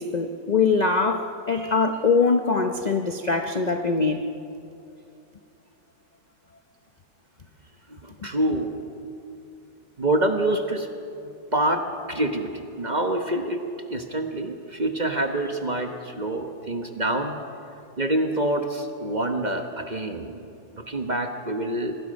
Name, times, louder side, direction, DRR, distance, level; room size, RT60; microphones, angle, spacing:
voice 1, 0.0-4.2, left 4 dB, 50° left, 6 dB, 0.5 m, -22 dB
voice 2, 7.9-8.8 10.0-10.9 11.5-13.6 13.9-17.4 18.0-20.5 20.7-22.0, right 1 dB, 30° right, 5 dB, 1.0 m, -26 dB
26.5 x 20.0 x 5.3 m, 2.6 s
omnidirectional pair, 2.0 m